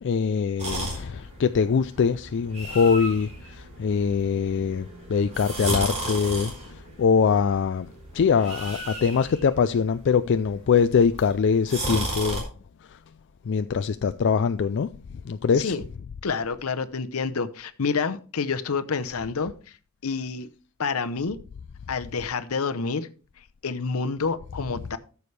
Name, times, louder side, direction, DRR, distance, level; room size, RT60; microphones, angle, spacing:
voice 1, 0.0-7.9 8.1-12.5 13.5-14.9 15.2-15.7, left 6 dB, 55° left, 0.3 m, -23 dB
sound 1, 0.6-12.4, right 1 dB, 30° right, 4.2 m, -35 dB
voice 2, 16.2-19.8 20.0-20.5 20.8-21.4 21.9-23.1 23.6-25.0, left 5 dB, 70° left, 0.8 m, -28 dB
14.0 x 7.0 x 3.3 m
head